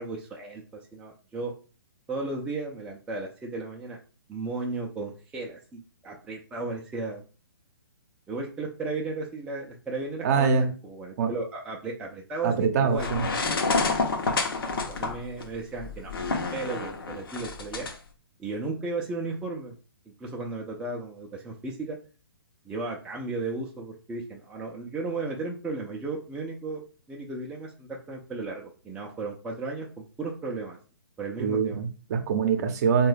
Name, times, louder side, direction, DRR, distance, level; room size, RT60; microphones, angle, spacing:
voice 1, 0.0-1.5 2.1-4.0 4.3-7.2 8.3-13.1 14.8-17.9 18.4-19.7 20.2-22.0 22.6-26.8 27.1-30.8 31.2-31.8, right 3 dB, 5° right, -2 dB, 0.4 m, -35 dB
voice 2, 10.2-10.7 11.2-11.3 12.4-13.2 31.4-33.1, right 6 dB, 45° right, 7 dB, 0.6 m, -24 dB
sound 1, 13.0-17.9, left 3 dB, 65° left, 0.7 m, -28 dB
3.7 x 2.3 x 3.2 m, 0.36 s
figure-of-eight pair, 130°, 13 cm